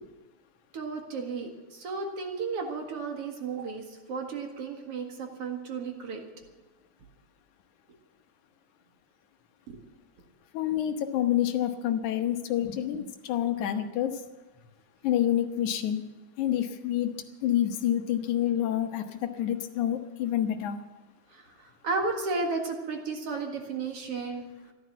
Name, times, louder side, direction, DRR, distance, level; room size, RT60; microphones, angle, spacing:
voice 1, 0.7-6.2 9.7-9.8 21.3-24.5, right 4 dB, 55° right, 3 dB, 2.6 m, -33 dB
voice 2, 10.5-14.2 15.0-16.0 16.4-17.1 17.4-20.8, left 11 dB, 80° left, 7 dB, 2.5 m, -28 dB
14.0 x 12.5 x 7.4 m, 1.2 s
omnidirectional pair, 3.4 m